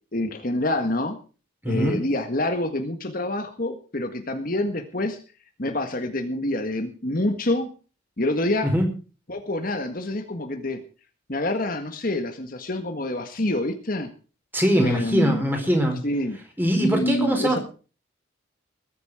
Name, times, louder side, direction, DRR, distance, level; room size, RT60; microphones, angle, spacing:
voice 1, 0.1-1.2 1.6-5.2 5.6-7.7 8.2-8.7 9.3-10.8 11.3-14.1 14.7-15.5 16.0-16.4 16.8-17.6, left 1 dB, 45° left, 6 dB, 1.7 m, -27 dB
voice 2, 1.6-2.0 8.6-8.9 14.5-16.0 16.6-17.6, equal, 10° right, 3 dB, 4.7 m, -22 dB
21.0 x 9.7 x 4.9 m, 0.37 s
head